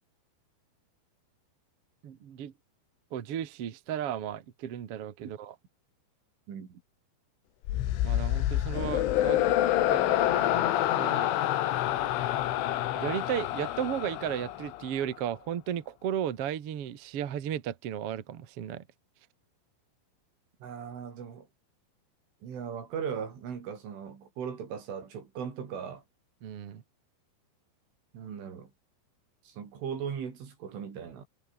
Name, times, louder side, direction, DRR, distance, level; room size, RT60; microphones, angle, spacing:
voice 1, 2.0-2.5 3.1-5.5 8.0-9.4 9.9-11.3 12.9-18.8 26.4-26.8, right 10 dB, 55° right, 1.6 m, -35 dB
voice 2, 6.5-6.8 20.6-21.5 22.4-26.0 28.1-28.7 29.5-31.3, right 7 dB, 85° right, 7.0 m, -38 dB
sound 1, 7.7-15.0, left 13 dB, 90° left, 4.1 m, -27 dB
omnidirectional pair, 5.4 m